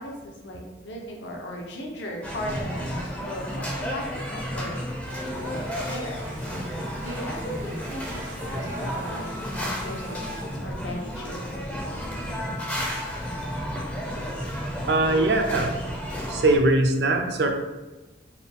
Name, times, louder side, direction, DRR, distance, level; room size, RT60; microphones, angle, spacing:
voice 1, 0.0-4.8 5.1-6.3 7.0-11.6, left 1 dB, 70° left, 0 dB, 0.7 m, -37 dB
sound 1, 2.2-16.6, equal, 10° left, 0.5 m, -32 dB
sound 2, 5.1-10.4, right 1 dB, 75° right, 1.1 m, -41 dB
voice 2, 14.8-15.7 16.3-17.5, right 2 dB, 60° right, 4 dB, 0.5 m, -21 dB
4.2 x 2.2 x 3.5 m, 1.1 s
head